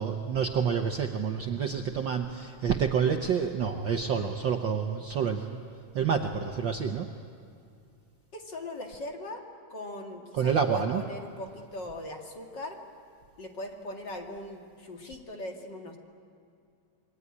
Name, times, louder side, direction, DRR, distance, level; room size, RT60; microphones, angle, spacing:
voice 1, 0.0-5.6 5.9-7.1 10.3-11.0, right 7 dB, 90° right, 5 dB, 1.0 m, -28 dB
voice 2, 8.3-9.4 9.7-12.8 13.4-16.0, left 1 dB, 40° left, 2 dB, 2.4 m, -40 dB
28.0 x 22.0 x 9.8 m, 2.4 s
omnidirectional pair, 3.6 m